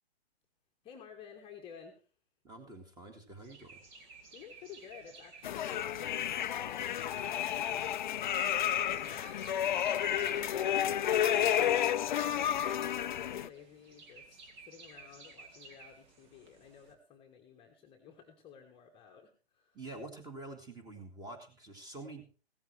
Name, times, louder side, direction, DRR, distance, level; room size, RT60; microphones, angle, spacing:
voice 1, 0.8-2.1 4.3-14.3 14.6-19.8, left 7 dB, 15° left, 2 dB, 1.2 m, -54 dB
voice 2, 2.4-3.8 19.7-22.2, right 2 dB, 10° right, 6 dB, 2.1 m, -47 dB
sound 1, 3.4-16.9, right 4 dB, 45° right, 2.5 m, -57 dB
sound 2, 5.4-13.5, left 10 dB, 45° left, 0.5 m, -31 dB
16.0 x 13.0 x 3.3 m, 0.37 s
figure-of-eight pair, 130°, 33 cm